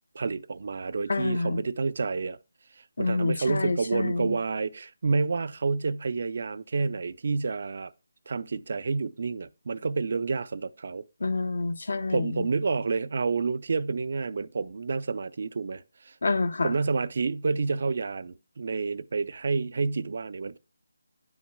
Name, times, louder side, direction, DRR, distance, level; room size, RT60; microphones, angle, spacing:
voice 1, 0.1-2.4 2.8-7.9 8.3-11.1 12.1-16.1 16.6-20.6, right 4 dB, 45° right, 0.5 m, -29 dB
voice 2, 1.1-1.6 3.0-4.3 11.2-12.4 16.2-16.7, left 3 dB, 65° left, 0.9 m, -27 dB
9.7 x 7.3 x 2.2 m
figure-of-eight pair, 170°, 0 cm